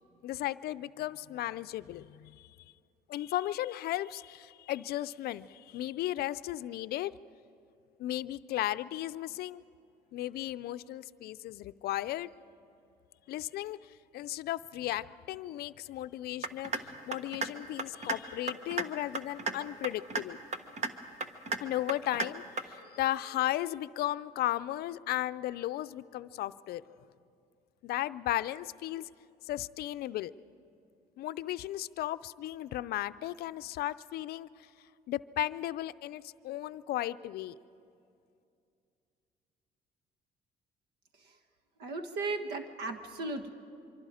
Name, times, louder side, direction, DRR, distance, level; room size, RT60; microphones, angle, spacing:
voice 1, 0.2-2.5 3.1-7.1 8.0-9.6 10.1-12.3 13.3-20.4 21.6-26.8 27.8-29.1 29.4-30.3 31.2-34.7 35.1-37.6, left 14 dB, 70° left, 15 dB, 0.5 m, -35 dB
sound 1, 16.4-16.8 17.1-17.5 17.8-18.2 18.5-18.8 19.1-19.5 19.8-20.2 20.5-20.9 21.2-21.6 21.9-22.3 22.6-22.7, right 3 dB, 40° right, 1.3 m, -32 dB
voice 2, 41.8-43.5, right 3 dB, 75° right, 7 dB, 1.5 m, -36 dB
24.5 x 24.5 x 5.0 m, 2.5 s
cardioid pair, 110°, 17 cm